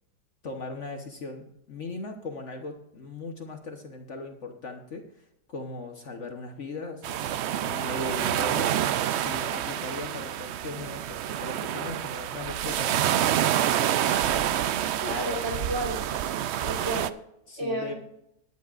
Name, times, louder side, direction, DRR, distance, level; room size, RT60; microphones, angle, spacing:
voice 1, 0.4-8.8 9.1-13.0 17.5-17.9, left 2 dB, 50° left, 4 dB, 1.4 m, -38 dB
sound 1, 7.0-17.1, right 11 dB, 85° right, 0.5 m, -27 dB
voice 2, 15.0-16.0 16.6-17.1 17.6-18.0, right 1 dB, 45° right, -1 dB, 3.7 m, -31 dB
17.5 x 10.5 x 2.5 m, 0.80 s
omnidirectional pair, 1.7 m